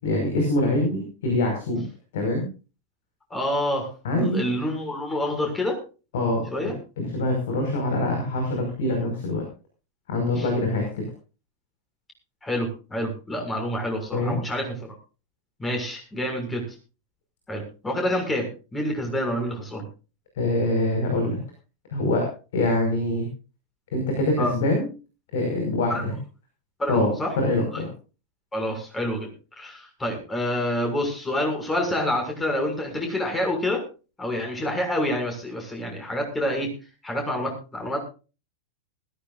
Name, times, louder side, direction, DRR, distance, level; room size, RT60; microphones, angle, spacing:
voice 1, 0.0-1.8 2.1-2.5 4.0-4.5 6.1-9.4 10.1-11.1 14.1-14.4 20.4-21.4 21.9-22.3 22.5-23.3 23.9-24.9 25.3-26.2 26.9-27.9, left 1 dB, 55° left, 2 dB, 5.4 m, -24 dB
voice 2, 3.3-3.9 4.2-5.8 6.5-6.7 10.4-10.5 12.4-14.9 15.6-16.6 17.5-19.8 24.4-24.5 25.9-26.0 26.8-27.3 28.5-29.3 29.6-33.8 34.2-36.7 37.0-38.0, left 1 dB, 10° left, 2 dB, 6.7 m, -27 dB
20.5 x 15.5 x 2.6 m, 0.34 s
figure-of-eight pair, 90°, 0 cm